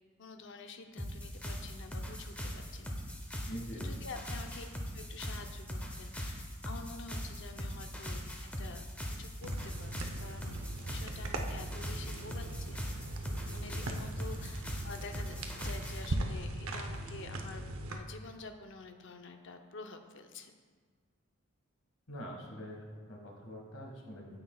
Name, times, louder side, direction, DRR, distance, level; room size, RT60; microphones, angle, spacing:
voice 1, 0.2-2.9 3.4-4.6 4.9-9.9 10.2-12.8 13.5-20.5, left 3 dB, 60° left, 5 dB, 0.7 m, -49 dB
sound 1, 1.0-16.1, equal, 5° left, 0.7 m, -41 dB
voice 2, 3.5-3.9 13.8-13.9 22.1-24.4, equal, 75° left, 0 dB, 1.7 m, -45 dB
sound 2, 9.4-18.0, right 1 dB, 75° right, 0.7 m, -39 dB
9.3 x 7.9 x 2.3 m, 1.6 s
head